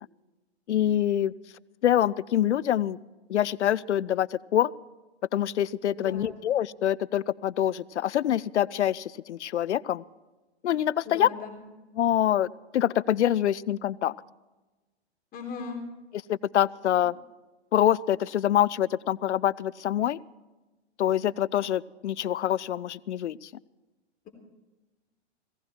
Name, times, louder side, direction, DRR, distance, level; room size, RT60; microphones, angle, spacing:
voice 1, 0.7-1.3 1.8-3.0 3.3-4.7 5.3-10.0 10.6-11.3 12.0-12.5 12.7-14.1 16.3-17.2 17.7-20.2 21.0-23.5, left 11 dB, 80° left, 21 dB, 0.6 m, -25 dB
voice 2, 6.0-6.3 11.0-11.6 15.3-15.8, left 5 dB, 25° left, 2 dB, 3.9 m, -38 dB
18.0 x 17.0 x 4.5 m, 1.1 s
hypercardioid pair, 125°, 34 cm